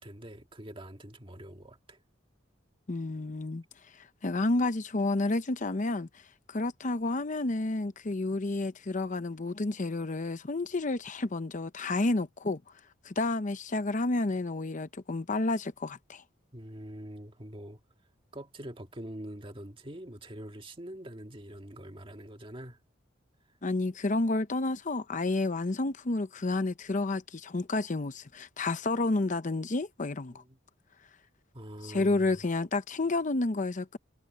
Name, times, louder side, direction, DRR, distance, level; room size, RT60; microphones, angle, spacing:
voice 1, 0.0-2.0 16.5-17.8 18.3-22.8 30.3-30.6 31.5-32.3, right 1 dB, 25° right, 1.9 m, -44 dB
voice 2, 2.9-3.6 3.9-6.2 6.5-12.6 13.0-16.2 23.6-30.3 31.8-34.0, left 2 dB, 40° left, 0.7 m, -30 dB
head